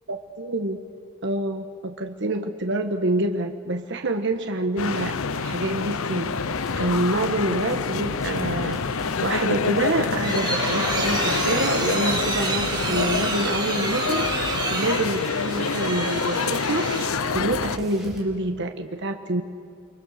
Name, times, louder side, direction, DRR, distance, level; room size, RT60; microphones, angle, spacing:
voice 1, 0.1-0.8 1.2-19.4, right 2 dB, 55° right, 4 dB, 1.3 m, -27 dB
sound 1, 4.8-17.8, left 5 dB, 70° left, 0.7 m, -27 dB
sound 2, 6.3-14.5 14.7-18.2, equal, ahead, 4.4 m, -42 dB
sound 3, 9.8-17.3, right 3 dB, 20° right, 3.9 m, -29 dB
30.0 x 24.0 x 6.6 m, 2.3 s
head